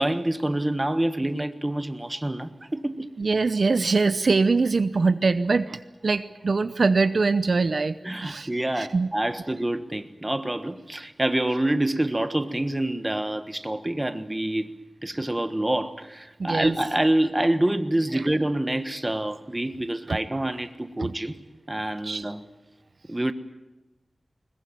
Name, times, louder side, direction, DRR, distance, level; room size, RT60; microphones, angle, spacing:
voice 1, 0.0-3.1 8.0-14.7 15.0-21.4 21.7-22.5 23.1-23.3, right 1 dB, 20° right, 1.4 m, -26 dB
voice 2, 3.2-8.0 8.2-8.5 8.8-9.1 16.4-16.8 20.1-20.2 21.0-21.1 22.0-22.2, right 4 dB, 65° right, 0.8 m, -23 dB
21.5 x 20.5 x 9.2 m
wide cardioid pair, 85°, 0 cm